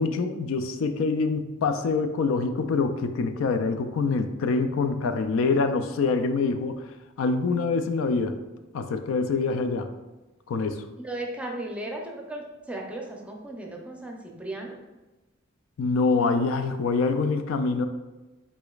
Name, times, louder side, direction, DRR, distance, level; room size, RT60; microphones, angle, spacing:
voice 1, 0.0-6.9 7.2-8.4 8.7-9.9 10.5-10.9 15.8-17.9, left 4 dB, 75° left, 8 dB, 0.4 m, -25 dB
voice 2, 11.0-14.7, right 1 dB, 5° right, 0 dB, 0.5 m, -36 dB
4.9 x 4.1 x 2.3 m, 1.1 s
head